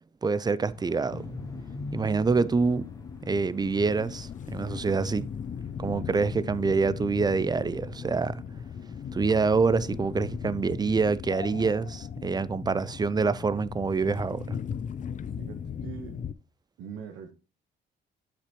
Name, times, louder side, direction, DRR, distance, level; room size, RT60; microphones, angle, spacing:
voice 1, 0.2-1.3 1.9-2.9 3.3-5.3 5.8-8.4 9.1-14.6, right 4 dB, 20° right, 0.4 m, -26 dB
sound 1, 0.7-10.4, left 2 dB, 15° left, 1.4 m, -47 dB
sound 2, 1.1-16.3, left 7 dB, 40° left, 0.5 m, -38 dB
voice 2, 15.4-16.2 16.8-17.3, right 7 dB, 90° right, 1.1 m, -41 dB
8.2 x 5.9 x 3.0 m
cardioid pair, 90°, 20 cm